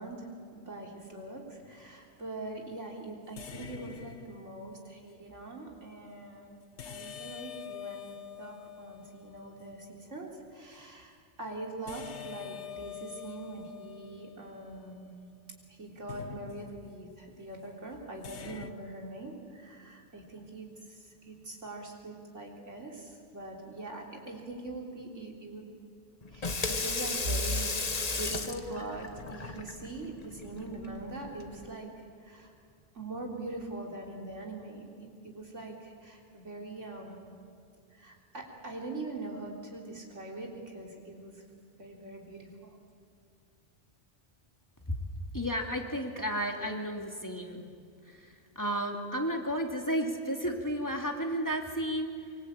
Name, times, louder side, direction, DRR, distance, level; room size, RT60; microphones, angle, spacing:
voice 1, 0.0-6.5 6.9-15.2 15.7-25.6 26.3-31.9 32.2-32.5 32.9-37.3 37.9-41.4 41.8-42.8, right 2 dB, 85° right, 0 dB, 4.1 m, -42 dB
sound 1, 1.6-2.0 3.4-4.9 6.8-9.8 11.9-15.3 16.1-17.1 18.2-18.7, left 9 dB, 70° left, 1.3 m, -46 dB
Water tap faucet / Sink (filling or washing), 26.2-31.7, left 3 dB, 35° left, 1.3 m, -35 dB
voice 2, 45.3-47.7 48.0-52.3, equal, 15° left, 1 dB, 2.4 m, -33 dB
24.5 x 24.0 x 8.7 m, 2.3 s
omnidirectional pair, 1.2 m